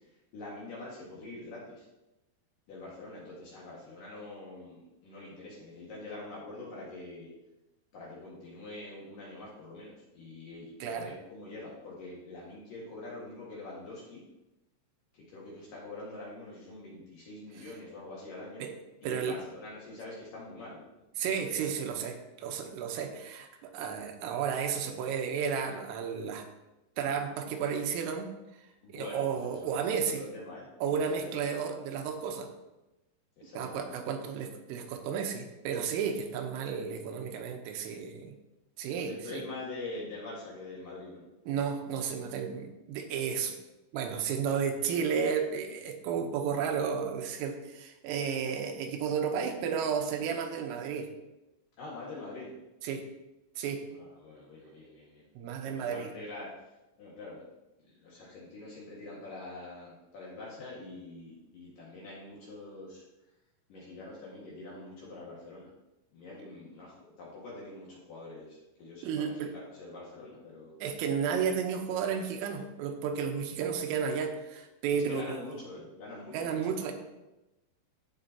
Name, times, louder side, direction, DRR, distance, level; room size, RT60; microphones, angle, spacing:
voice 1, 0.3-1.8 2.7-7.3 7.9-14.2 15.1-18.7 19.0-20.9 21.3-21.8 28.8-29.8 30.2-30.7 31.2-31.3 33.4-33.9 39.0-41.3 51.8-52.5 53.9-55.2 55.6-56.5 57.0-57.4 58.0-63.0 63.7-65.7 66.1-70.7 74.9-76.6, left 2 dB, 55° left, -5 dB, 2.7 m, -45 dB
voice 2, 10.8-11.1 17.6-17.7 18.6-18.7 19.0-19.4 21.2-26.5 27.0-28.3 28.9-30.3 30.8-32.5 33.6-38.4 38.8-39.5 41.5-43.5 43.9-51.1 52.8-53.0 53.6-53.9 55.4-56.1 69.0-69.5 70.8-75.5 76.3-76.9, right 6 dB, 85° right, 4 dB, 3.5 m, -32 dB
14.5 x 6.6 x 2.9 m, 0.98 s
omnidirectional pair, 5.8 m